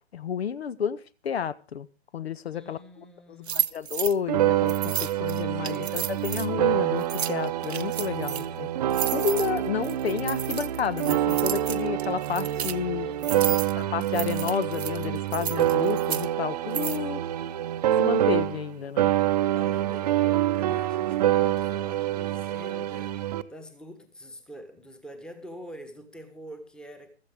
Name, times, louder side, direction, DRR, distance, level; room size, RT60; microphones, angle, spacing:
voice 1, 0.1-1.9 2.1-3.0 3.5-8.7 9.1-13.1 13.8-17.2 18.0-19.1, left 7 dB, 65° left, 18 dB, 0.8 m, -31 dB
voice 2, 2.5-3.7 5.5-6.1 8.2-8.8 13.0-13.8 19.5-27.1, equal, ahead, 8 dB, 1.2 m, -46 dB
sound 1, 3.5-4.1 4.7-6.5 7.0-8.4 8.9-12.7 13.2-13.7 14.0-16.3 16.7-17.0, right 9 dB, 70° right, 0.8 m, -32 dB
sound 2, 4.3-18.7 19.0-23.4, right 12 dB, 35° right, 0.7 m, -26 dB
15.5 x 13.5 x 3.5 m, 0.34 s
figure-of-eight pair, 135°, 33 cm